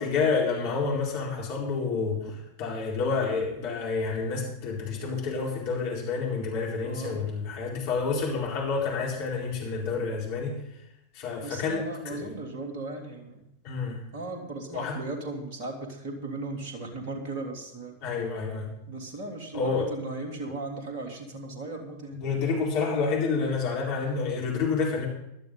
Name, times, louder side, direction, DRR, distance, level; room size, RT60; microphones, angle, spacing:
voice 1, 0.0-2.2 2.6-10.5 11.1-12.4 13.6-14.0 14.7-15.0 18.0-18.7 19.5-19.9 22.2-25.1, left 4 dB, 45° left, -3 dB, 4.4 m, -29 dB
voice 2, 6.8-7.2 11.4-13.4 14.1-18.0 18.9-22.2, right 2 dB, 45° right, 1 dB, 3.1 m, -37 dB
17.0 x 12.0 x 3.9 m, 0.80 s
figure-of-eight pair, 90°, 0 cm